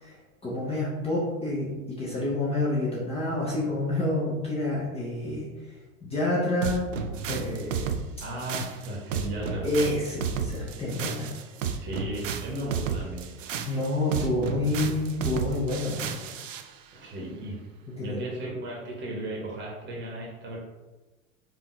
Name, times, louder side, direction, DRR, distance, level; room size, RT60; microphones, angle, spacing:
voice 1, 0.0-5.7 6.0-6.9 7.3-7.9 9.6-11.3 13.7-16.2 17.9-18.2, left 2 dB, 15° left, -6 dB, 0.8 m, -28 dB
sound 1, 6.6-16.7, right 7 dB, 65° right, 0.5 m, -32 dB
voice 2, 8.2-9.7 11.7-13.3 17.0-17.6 18.0-20.6, right 1 dB, 25° right, -4 dB, 1.2 m, -35 dB
4.7 x 2.7 x 3.1 m, 1.2 s
figure-of-eight pair, 85°, 42 cm